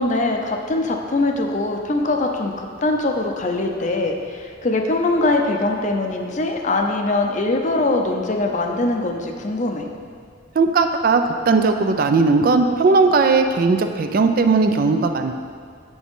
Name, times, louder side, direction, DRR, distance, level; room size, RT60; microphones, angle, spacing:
voice 1, 0.0-9.9, left 2 dB, 40° left, 3 dB, 0.6 m, -22 dB
voice 2, 10.6-15.3, right 4 dB, 45° right, 6 dB, 0.3 m, -17 dB
6.9 x 6.2 x 3.7 m, 2.1 s
head